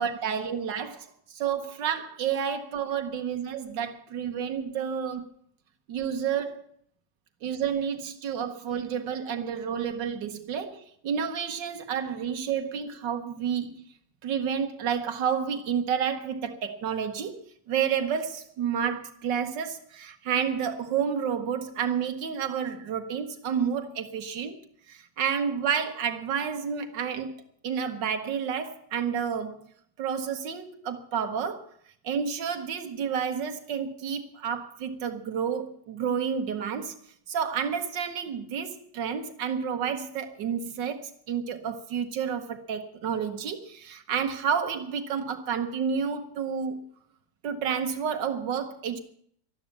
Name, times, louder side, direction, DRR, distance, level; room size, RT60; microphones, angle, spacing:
voice 1, 0.0-5.3 5.9-6.6 7.4-13.8 14.2-17.4 17.7-24.6 24.9-27.3 27.6-29.6 30.0-31.7 32.0-36.9 37.3-46.8 47.4-49.0, right 7 dB, 90° right, 7 dB, 1.8 m, -30 dB
12.5 x 12.5 x 8.4 m, 0.65 s
omnidirectional pair, 1.9 m